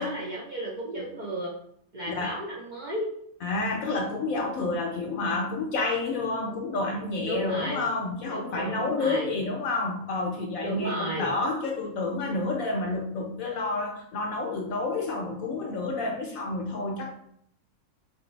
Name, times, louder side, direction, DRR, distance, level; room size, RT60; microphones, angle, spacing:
voice 1, 0.0-1.5 1.9-3.1 7.2-7.8 8.3-9.4 10.6-11.3, right 1 dB, 45° right, -4 dB, 0.6 m, -34 dB
voice 2, 2.1-2.4 3.4-17.1, left 3 dB, 70° left, 2 dB, 0.9 m, -29 dB
3.2 x 2.6 x 4.3 m, 0.69 s
omnidirectional pair, 1.6 m